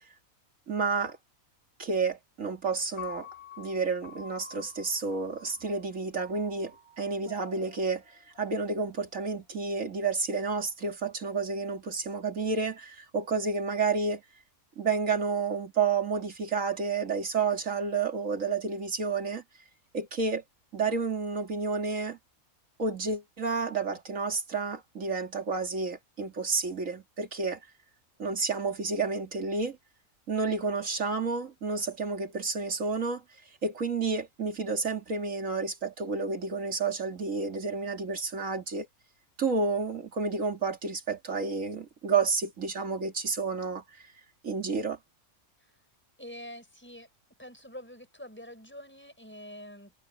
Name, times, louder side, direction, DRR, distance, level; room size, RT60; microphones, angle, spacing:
voice 1, 0.7-1.2 1.8-3.3 3.6-8.0 8.4-14.2 14.8-19.4 19.9-20.4 20.7-22.2 22.8-27.6 28.2-29.8 30.3-33.2 33.6-38.9 39.4-43.8 44.4-45.0, right 4 dB, 65° right, 2.7 m, -30 dB
Piano, 3.0-9.2, left 7 dB, 45° left, 5.3 m, -48 dB
voice 2, 46.2-47.1 47.4-49.9, equal, 10° left, 5.9 m, -46 dB
omnidirectional pair, 1.5 m